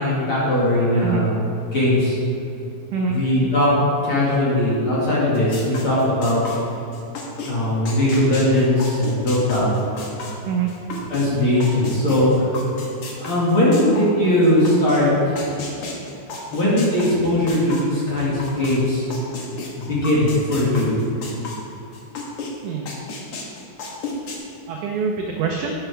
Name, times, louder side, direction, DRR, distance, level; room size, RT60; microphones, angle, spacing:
voice 1, 0.0-1.3 1.7-2.2 3.1-3.7 4.0-6.4 7.4-9.7 11.1-12.5 13.2-15.4 16.5-19.0 19.7-20.9, left 1 dB, 40° left, -8 dB, 2.3 m, -19 dB
sound 1, 5.3-11.3 11.6-18.8 19.1-22.5 22.9-24.4, left 4 dB, 60° left, 1.5 m, -33 dB
voice 2, 24.7-25.7, right 6 dB, 80° right, 0 dB, 1.8 m, -24 dB
11.5 x 8.7 x 3.4 m, 2.9 s
omnidirectional pair, 4.4 m